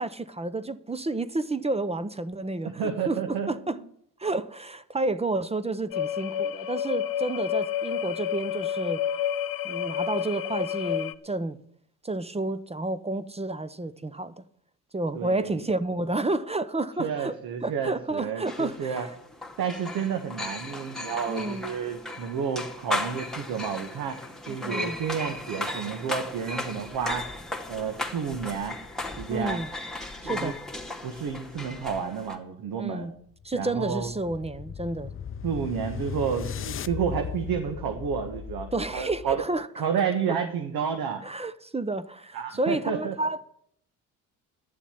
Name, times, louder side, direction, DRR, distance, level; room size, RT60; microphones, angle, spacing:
voice 1, 0.0-3.2 3.5-3.8 4.2-9.0 9.6-11.6 12.0-14.4 14.9-17.4 17.6-19.1 21.3-21.7 24.5-25.0 29.3-29.7 30.2-30.6 32.8-33.1 33.4-35.1 38.7-39.9 41.2-43.5, right 2 dB, 15° right, 0.7 m, -30 dB
voice 2, 2.6-3.5 15.2-15.6 17.0-19.1 19.6-24.2 24.5-27.3 27.7-28.8 29.2-29.6 30.2-30.5 31.0-33.1 33.5-34.1 35.4-39.4 39.8-41.2 42.3-43.1, right 7 dB, 65° right, 1.6 m, -30 dB
sound 1, 5.9-11.1, left 10 dB, 60° left, 0.9 m, -29 dB
sound 2, 18.5-32.4, left 2 dB, ahead, 2.5 m, -36 dB
sound 3, 33.2-39.5, left 8 dB, 35° left, 0.6 m, -37 dB
11.5 x 7.2 x 9.5 m
supercardioid pair, 70°, 39 cm